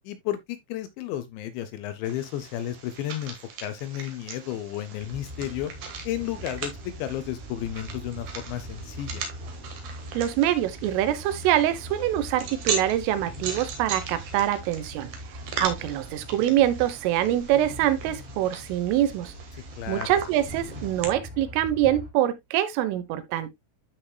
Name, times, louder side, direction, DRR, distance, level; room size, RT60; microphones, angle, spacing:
voice 1, 0.0-3.4 3.6-5.7 6.0-9.2 19.8-20.1, left 12 dB, 80° left, 2.8 m, -32 dB
sound 1, 2.0-21.0, right 5 dB, 60° right, 2.2 m, -39 dB
sound 2, 5.0-22.1, equal, 15° right, 2.7 m, -41 dB
voice 2, 10.2-15.1 15.6-19.3 19.9-23.5, right 12 dB, 85° right, 3.5 m, -24 dB
12.5 x 5.5 x 2.2 m
omnidirectional pair, 5.6 m